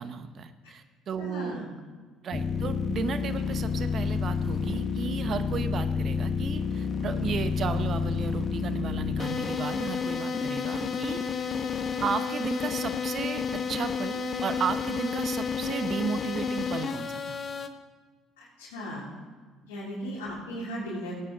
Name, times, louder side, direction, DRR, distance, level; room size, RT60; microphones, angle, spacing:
voice 1, 0.0-1.6 2.2-11.6 12.0-13.4 13.7-17.4, right 6 dB, 50° right, 10 dB, 0.9 m, -34 dB
voice 2, 1.2-1.6 18.4-19.0 19.7-21.1, equal, 90° left, -8 dB, 3.0 m, -36 dB
sound 1, 2.3-17.7, left 6 dB, 45° left, 0.9 m, -30 dB
16.5 x 9.2 x 3.9 m, 1.5 s
hypercardioid pair, 65°, 0 cm